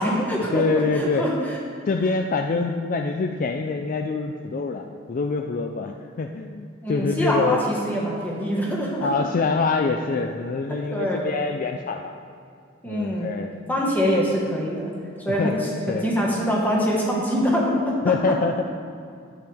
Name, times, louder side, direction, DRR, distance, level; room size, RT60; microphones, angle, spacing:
voice 1, 0.0-1.6 6.8-9.1 10.7-11.2 12.8-13.3 13.7-14.9 15.2-15.6 15.9-18.0, equal, 10° left, -3 dB, 1.5 m, -24 dB
voice 2, 0.5-1.3 1.9-7.6 9.0-12.2 12.9-13.5 15.3-16.0 18.0-18.6, left 4 dB, 40° left, 4 dB, 0.3 m, -25 dB
10.5 x 7.8 x 3.5 m, 2.4 s
head